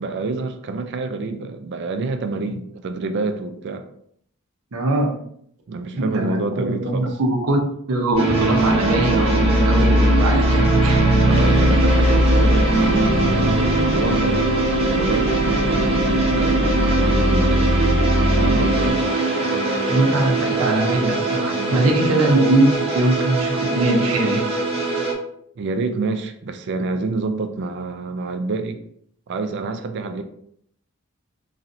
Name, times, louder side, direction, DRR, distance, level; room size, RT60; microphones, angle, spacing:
voice 1, 0.0-3.8 5.7-7.1 11.2-14.4 14.9-19.0 20.3-20.4 21.5-22.2 25.6-28.8 29.3-30.2, right 3 dB, 55° right, 8 dB, 0.4 m, -28 dB
voice 2, 4.7-5.1 5.9-7.6 7.9-11.1 19.9-24.4, right 2 dB, 90° right, 1 dB, 0.7 m, -21 dB
sound 1, 8.2-25.1, right 2 dB, 30° right, 0.7 m, -22 dB
sound 2, 8.3-18.9, equal, 65° left, 1.0 m, -20 dB
3.1 x 2.7 x 2.5 m, 0.68 s
head